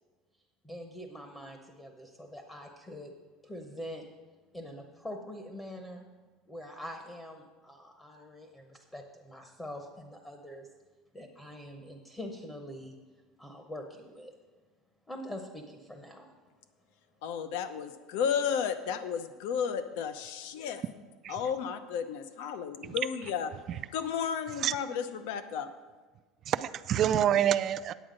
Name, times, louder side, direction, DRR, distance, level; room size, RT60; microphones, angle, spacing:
voice 1, 0.6-3.1 3.4-4.1 4.5-6.1 6.5-10.7 11.1-13.0 13.4-14.3 15.1-16.3, equal, 10° left, 4 dB, 0.8 m, -44 dB
voice 2, 17.2-20.8 21.3-23.5 23.9-25.7, left 7 dB, 70° left, 10 dB, 0.7 m, -33 dB
voice 3, 26.5-27.9, right 10 dB, 35° right, 13 dB, 0.3 m, -27 dB
9.2 x 8.7 x 5.1 m, 1.3 s
cardioid pair, 160°, 0 cm